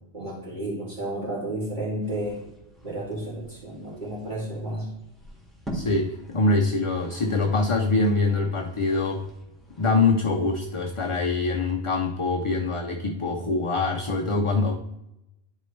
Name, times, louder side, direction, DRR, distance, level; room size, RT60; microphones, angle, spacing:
voice 1, 0.1-2.4 2.8-4.9, right 1 dB, 45° right, -5 dB, 3.0 m, -32 dB
sound 1, 2.0-11.7, equal, ahead, 1.8 m, -45 dB
voice 2, 5.7-9.2 9.8-14.7, left 3 dB, 35° left, 3 dB, 0.5 m, -24 dB
11.0 x 4.6 x 3.2 m, 0.87 s
omnidirectional pair, 1.1 m